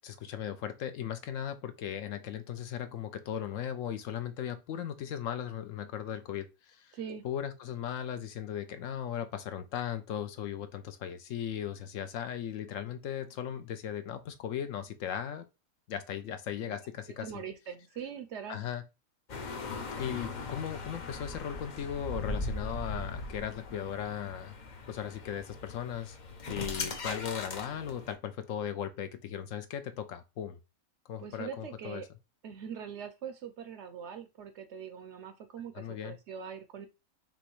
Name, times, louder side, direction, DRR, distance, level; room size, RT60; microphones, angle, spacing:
voice 1, 0.0-7.0 7.2-15.5 15.9-17.3 18.5-18.8 20.0-24.6 24.9-26.2 26.5-30.6 31.1-32.0 35.7-36.2, left 9 dB, 70° left, 0.9 m, -37 dB
voice 2, 6.9-7.2 17.1-18.6 31.2-32.1 32.4-36.9, right 7 dB, 65° right, 0.8 m, -42 dB
sound 1, 19.3-28.1, left 3 dB, 45° left, 0.6 m, -39 dB
5.3 x 3.0 x 3.1 m
omnidirectional pair, 1.5 m